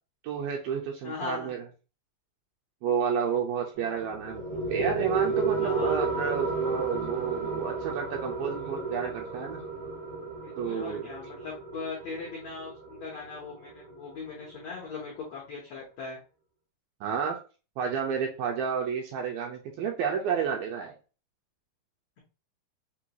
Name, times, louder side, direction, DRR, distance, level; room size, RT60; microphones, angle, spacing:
voice 1, 0.2-1.6 2.8-9.6 10.6-11.1 17.0-17.4 17.8-21.0, right 7 dB, 85° right, 2 dB, 2.2 m, -31 dB
voice 2, 1.0-1.5 5.6-6.0 10.4-16.2, left 4 dB, 85° left, -3 dB, 1.4 m, -39 dB
sound 1, 3.7-14.8, right 4 dB, 60° right, 0.9 m, -32 dB
6.0 x 2.3 x 2.9 m, 0.33 s
omnidirectional pair, 4.6 m